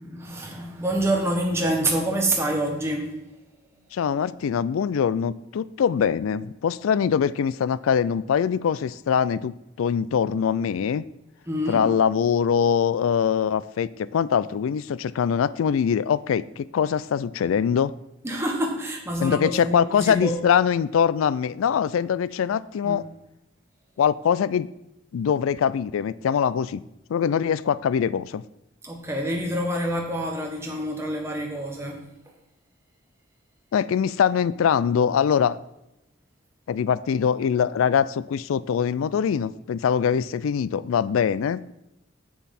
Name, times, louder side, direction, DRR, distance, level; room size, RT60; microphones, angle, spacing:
voice 1, 0.0-3.2 11.5-11.8 18.2-20.4 22.8-23.0 28.8-32.0, right 1 dB, 15° right, 1 dB, 1.2 m, -27 dB
voice 2, 3.9-11.0 11.7-17.9 19.2-23.1 24.0-24.7 25.1-26.8 27.1-28.4 33.7-35.6 36.7-41.7, left 7 dB, 85° left, 18 dB, 0.3 m, -23 dB
7.3 x 7.1 x 4.2 m, 0.91 s
head